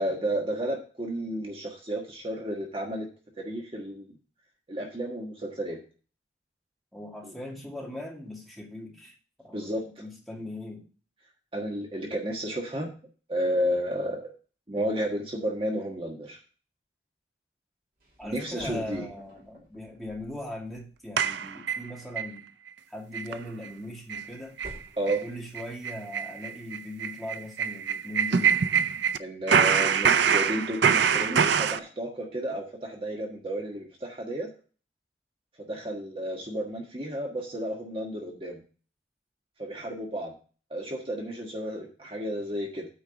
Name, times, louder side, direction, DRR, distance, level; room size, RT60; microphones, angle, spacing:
voice 1, 0.0-3.1 3.4-4.1 4.7-5.8 7.2-7.3 9.5-9.8 11.5-12.9 13.3-14.3 14.7-16.4 18.2-19.0 25.0-25.2 29.2-34.5 35.6-38.6 39.6-40.3 40.7-42.9, right 1 dB, 30° right, 0 dB, 1.5 m, -32 dB
voice 2, 6.9-9.1 9.4-10.8 18.2-22.4 22.9-24.6 25.2-28.5, left 1 dB, ahead, -2 dB, 2.2 m, -40 dB
sound 1, 18.0-21.2 23.4-25.9, equal, 55° right, 2.9 m, -48 dB
sound 2, 21.2-22.3 22.7-22.8 23.1-23.4 23.6-23.7 24.1-24.3 24.6-24.8 25.1-25.2 25.5-29.2 29.5-31.8, right 7 dB, 80° right, 0.5 m, -24 dB
8.8 x 4.7 x 6.8 m, 0.37 s
head